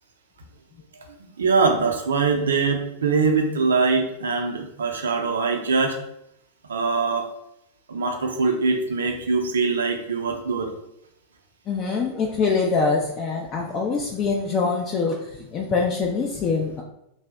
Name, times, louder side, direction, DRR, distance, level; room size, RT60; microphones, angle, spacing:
voice 1, 1.2-6.0 6.7-7.3 7.9-10.7, right 4 dB, 65° right, 4 dB, 0.4 m, -23 dB
voice 2, 11.7-16.8, left 4 dB, 30° left, -1 dB, 0.4 m, -24 dB
2.7 x 2.0 x 3.4 m, 0.79 s
figure-of-eight pair, 90°, 0 cm